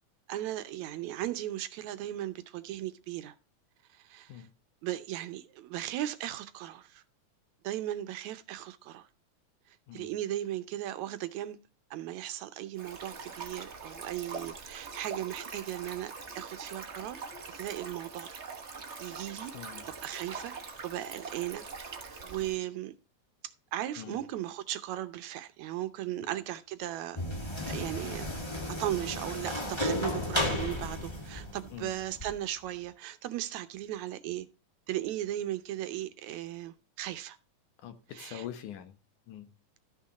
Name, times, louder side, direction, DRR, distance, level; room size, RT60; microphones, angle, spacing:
voice 1, 0.3-3.4 3.9-4.5 4.8-7.0 7.6-9.1 9.7-11.6 11.9-17.2 17.5-18.3 19.0-19.5 19.9-22.9 23.4-27.2 27.7-28.3 28.7-34.5 34.9-37.4 38.1-38.5, right 13 dB, 75° right, 2.0 m, -37 dB
Stream, 12.8-22.6, right 4 dB, 40° right, 0.9 m, -43 dB
voice 2, 19.5-19.9 24.0-24.2 26.2-26.3 30.2-30.3 31.7-31.9 37.8-39.0 39.3-39.5, left 10 dB, 80° left, 2.7 m, -44 dB
sound 1, 27.2-32.3, left 1 dB, 15° left, 1.0 m, -34 dB
13.5 x 6.1 x 4.1 m
omnidirectional pair, 3.5 m